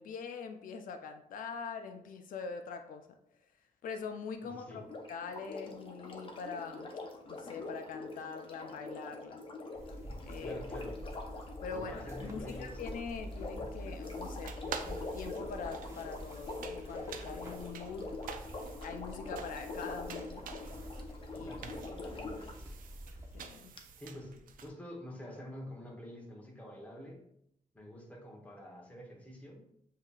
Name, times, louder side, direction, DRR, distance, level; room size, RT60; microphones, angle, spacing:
voice 1, 0.0-3.1 3.8-4.8 5.1-6.9 7.3-9.4 10.2-10.6 11.6-18.1 18.8-20.4 21.3-21.5 23.3-23.7, left 5 dB, 85° left, 6 dB, 0.5 m, -43 dB
voice 2, 4.4-4.8 10.4-11.0 11.7-12.8 21.3-22.5 24.0-27.2 27.7-29.7, equal, 10° left, -1 dB, 0.9 m, -47 dB
Sink (filling or washing), 4.8-22.6 23.8-23.9, left 3 dB, 40° left, 0.6 m, -44 dB
sound 1, 9.7-23.4, equal, 20° right, 0.7 m, -47 dB
sound 2, 14.0-24.7, right 6 dB, 90° right, 0.4 m, -49 dB
7.3 x 2.8 x 2.3 m, 0.74 s
wide cardioid pair, 165°, 14 cm